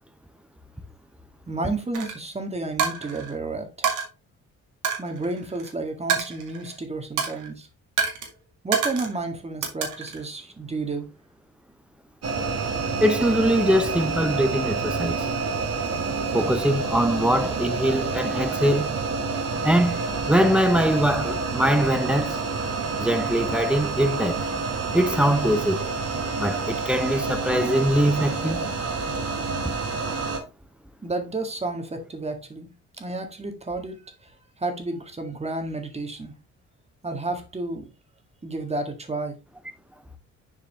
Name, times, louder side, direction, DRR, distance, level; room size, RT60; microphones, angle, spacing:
voice 1, 1.5-3.9 5.0-7.7 8.6-11.1 31.0-32.7 33.0-34.3 34.6-36.4 37.0-37.9 38.4-39.4, right 2 dB, 20° right, 1.7 m, -31 dB
Coin (dropping), 1.9-2.1 2.8-3.3 3.8-4.0 4.8-5.7 6.1-6.8 7.2-7.5 8.0-8.3 8.7-9.2 9.6-10.2, right 6 dB, 80° right, 2.1 m, -27 dB
sound 1, 12.2-30.4, right 4 dB, 55° right, 1.8 m, -28 dB
voice 2, 13.0-15.3 16.3-19.0 19.6-22.4 23.0-24.4 24.9-25.8 26.4-28.7, equal, 5° right, 0.8 m, -22 dB
7.2 x 4.7 x 3.3 m
cardioid pair, 90°, 30 cm